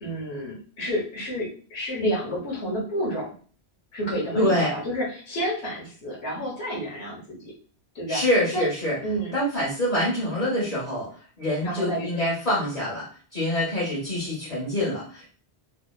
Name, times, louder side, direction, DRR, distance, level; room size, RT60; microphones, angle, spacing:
voice 1, 0.0-3.3 3.9-7.5 7.9-8.2 8.5-8.7 9.0-9.3 11.6-12.1, equal, 85° left, -3 dB, 1.1 m, -30 dB
voice 2, 4.3-4.7 8.1-9.0 9.3-11.1 11.4-15.3, left 1 dB, 40° left, -9 dB, 1.0 m, -25 dB
2.8 x 2.0 x 2.2 m, 0.42 s
omnidirectional pair, 1.1 m